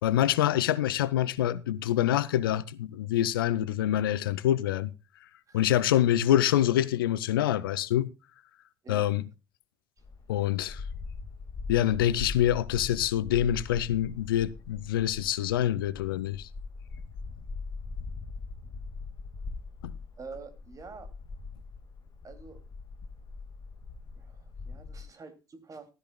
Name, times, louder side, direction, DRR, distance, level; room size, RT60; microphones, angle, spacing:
voice 1, 0.0-4.9 5.5-8.1 8.9-9.2 10.3-10.8 11.7-16.5, left 12 dB, 70° left, 0.5 m, -26 dB
sound 1, 10.0-25.0, left 4 dB, 35° left, 1.9 m, -41 dB
voice 2, 20.2-21.1 22.2-22.6 24.2-25.9, right 4 dB, 30° right, 2.5 m, -46 dB
15.0 x 13.5 x 2.2 m
figure-of-eight pair, 60°, 12 cm